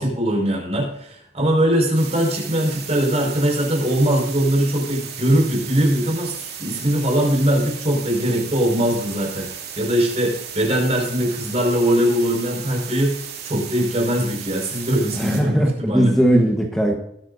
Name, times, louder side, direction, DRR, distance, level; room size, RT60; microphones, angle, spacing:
voice 1, 0.0-9.5 9.8-16.2, equal, 35° right, 0 dB, 5.0 m, -21 dB
sound 1, 1.9-15.4, right 8 dB, 60° right, 2.6 m, -35 dB
voice 2, 15.2-16.9, equal, ahead, 1 dB, 1.2 m, -18 dB
20.5 x 9.6 x 2.6 m, 0.76 s
head